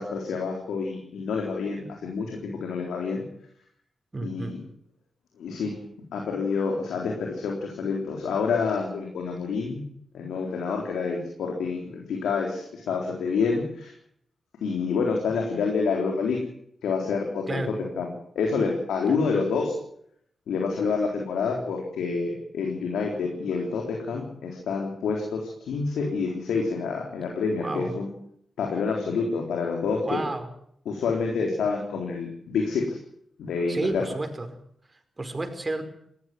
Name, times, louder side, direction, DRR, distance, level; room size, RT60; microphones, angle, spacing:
voice 1, 0.0-3.2 4.2-4.6 5.4-5.8 6.1-9.8 10.1-13.9 14.6-16.4 16.8-19.8 20.5-28.1 28.6-30.2 30.9-33.0 33.4-34.1, left 5 dB, 90° left, 1 dB, 3.9 m, -28 dB
voice 2, 4.1-4.5 17.5-17.7 27.6-27.9 30.0-30.5 33.7-34.5 35.2-35.8, right 2 dB, 35° right, 7 dB, 5.1 m, -30 dB
20.0 x 14.5 x 9.7 m, 0.69 s
supercardioid pair, 50°, 0 cm